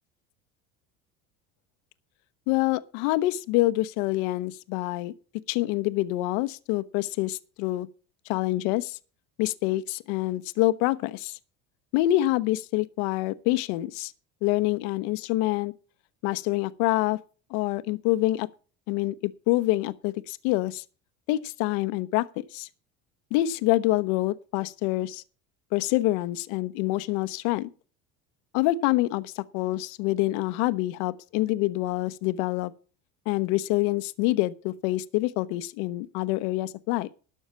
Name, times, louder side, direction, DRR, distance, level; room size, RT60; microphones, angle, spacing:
voice 1, 2.5-5.1 5.5-7.9 8.3-9.0 9.4-11.4 11.9-14.1 14.4-15.7 16.2-17.2 17.5-18.5 18.9-20.8 21.3-22.3 22.5-22.7 23.3-25.2 25.7-27.7 28.5-32.7 33.3-37.1, left 17 dB, 70° left, 0.9 m, -26 dB
12.0 x 6.5 x 7.4 m
hypercardioid pair, 80°, 37 cm